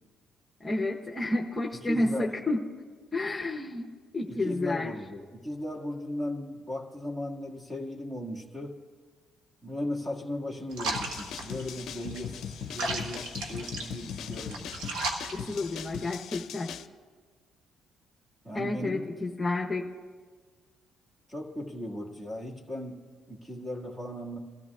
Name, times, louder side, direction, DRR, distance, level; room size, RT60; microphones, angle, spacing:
voice 1, 0.6-2.6 3.1-4.9 15.3-16.7 18.5-19.9, left 2 dB, 15° left, -1 dB, 1.0 m, -30 dB
voice 2, 1.8-2.3 4.3-8.8 9.6-15.0 18.4-19.0 21.3-23.0 23.3-24.4, left 1 dB, 15° right, 0 dB, 1.9 m, -37 dB
sound 1, 10.7-16.1, right 2 dB, 85° right, 1.5 m, -36 dB
sound 2, 10.9-16.9, left 8 dB, 70° left, 0.5 m, -40 dB
23.0 x 13.5 x 2.4 m, 1.5 s
cardioid pair, 105°, 0 cm